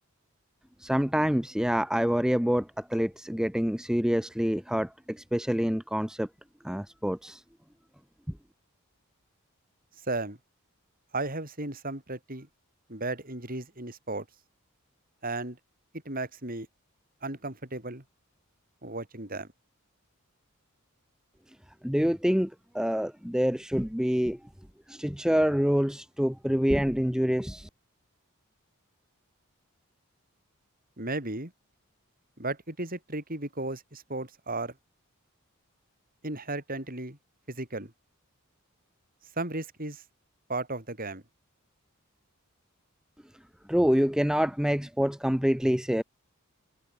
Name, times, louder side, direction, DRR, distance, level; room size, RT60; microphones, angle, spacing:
voice 1, 0.8-4.9 5.2-6.3 6.6-7.4 21.8-22.5 22.7-24.4 24.9-27.7 43.7-46.0, equal, 5° right, 1.0 m, -26 dB
voice 2, 10.1-10.4 11.1-12.5 12.9-14.3 15.2-15.6 16.0-16.7 17.2-18.0 18.8-19.5 31.0-31.5 32.4-34.7 36.2-37.2 37.5-37.9 39.4-40.0 40.5-41.2, right 2 dB, 40° right, 6.2 m, -34 dB
head